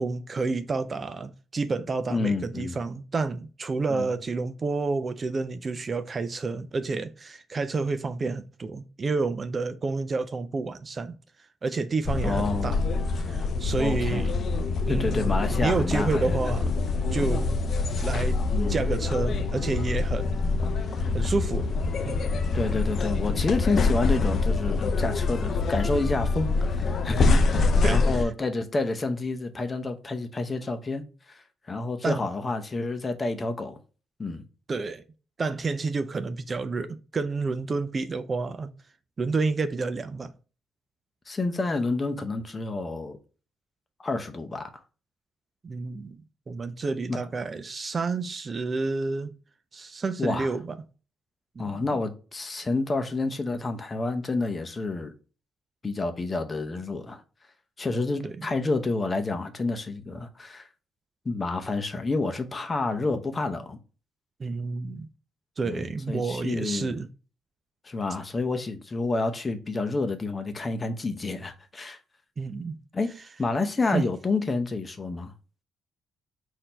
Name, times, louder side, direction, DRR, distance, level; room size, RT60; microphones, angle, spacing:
voice 1, 0.0-11.2 11.6-12.8 13.1-14.3 14.9-16.7 17.1-17.6 18.0-18.4 18.7-20.6 20.9-21.7 22.1-22.3 27.8-28.3 32.0-32.2 34.7-35.0 35.4-38.7 39.2-40.3 45.6-46.2 46.5-49.3 49.7-50.8 51.6-51.8 58.2-58.5 64.4-65.1 65.6-67.1 72.4-72.7 73.9-74.1, right 4 dB, 35° right, 0.4 m, -29 dB
voice 2, 2.1-2.8 3.9-4.1 12.2-12.8 13.8-14.3 14.9-16.4 18.5-18.8 22.5-33.8 34.2-34.4 41.3-43.2 44.0-44.7 47.1-47.3 50.2-50.5 51.6-55.1 55.8-57.2 57.8-60.7 61.2-63.8 65.7-67.0 67.8-72.0 72.9-73.1 73.4-75.3, left 3 dB, 30° left, 0.8 m, -29 dB
sound 1, 12.0-28.2, left 3 dB, 55° left, 0.5 m, -25 dB
4.2 x 2.7 x 4.3 m
cardioid pair, 90°, 0 cm